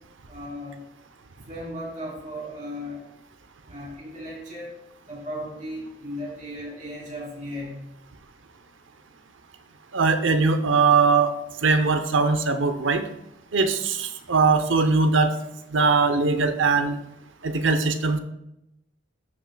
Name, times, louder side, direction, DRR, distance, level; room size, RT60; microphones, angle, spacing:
voice 1, 0.3-0.8 1.5-3.0 3.7-4.7 5.1-7.8, equal, 40° right, -5 dB, 3.2 m, -36 dB
voice 2, 9.9-11.3 11.6-13.0 13.5-15.3 15.7-16.9 17.4-18.2, right 4 dB, 85° right, 9 dB, 0.7 m, -21 dB
12.5 x 5.9 x 2.3 m, 0.83 s
head